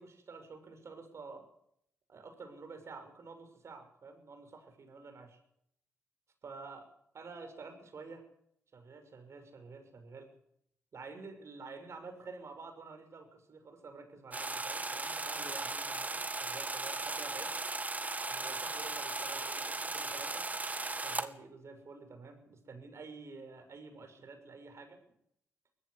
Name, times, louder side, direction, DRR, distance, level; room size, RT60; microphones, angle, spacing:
voice 1, 0.0-1.4 2.1-5.4 6.4-6.9 7.1-8.2 8.7-10.3 10.9-17.5 18.3-20.5 21.0-25.0, right 4 dB, 60° right, 6 dB, 6.2 m, -49 dB
sound 1, 14.3-21.3, right 3 dB, 30° right, 2.0 m, -37 dB
20.0 x 15.0 x 9.8 m, 0.73 s
cardioid pair, 55°, 5 cm